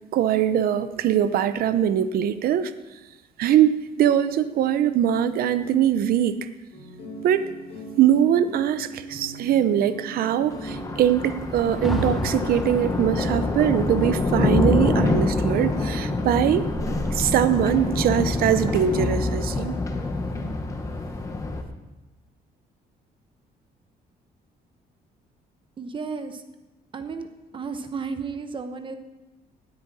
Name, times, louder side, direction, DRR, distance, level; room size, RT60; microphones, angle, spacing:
voice 1, 0.1-2.7 3.4-6.4 7.2-7.5 8.0-16.7 17.1-19.8, right 10 dB, 65° right, 12 dB, 0.7 m, -22 dB
sound 1, 6.7-20.4, equal, 40° left, 5.7 m, -40 dB
Thunder, 10.4-21.6, left 2 dB, 20° left, 1.1 m, -26 dB
Rain, 11.5-20.6, equal, ahead, 1.5 m, -36 dB
voice 2, 25.8-26.4 26.9-27.3 27.5-29.0, right 5 dB, 30° right, 8 dB, 1.0 m, -33 dB
17.5 x 9.7 x 4.2 m, 1.1 s
cardioid pair, 155°, 17 cm